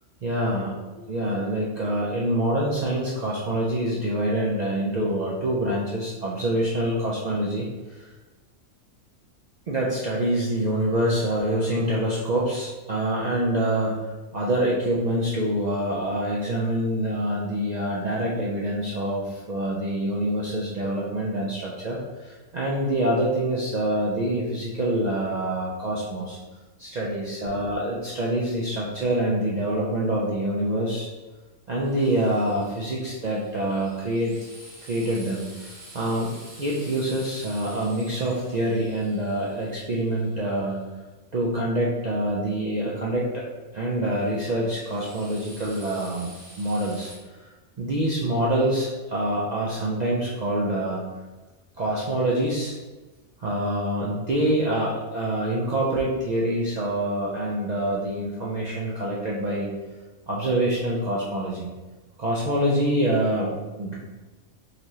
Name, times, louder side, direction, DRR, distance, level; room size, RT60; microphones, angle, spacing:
voice 1, 0.2-0.7 1.1-8.0 9.7-14.0 14.3-26.4 26.8-31.1 31.7-34.4 34.9-36.3 36.6-40.8 41.3-43.4 43.7-47.1 47.8-51.0 51.8-52.8 53.4-59.7 60.3-61.7 62.2-63.5 63.8-63.9, right 1 dB, 85° right, -5 dB, 0.3 m, -26 dB
Drill, 31.8-40.7 44.1-47.1, right 1 dB, 55° right, 1.5 m, -48 dB
4.1 x 3.0 x 2.7 m, 1.2 s
omnidirectional pair, 1.5 m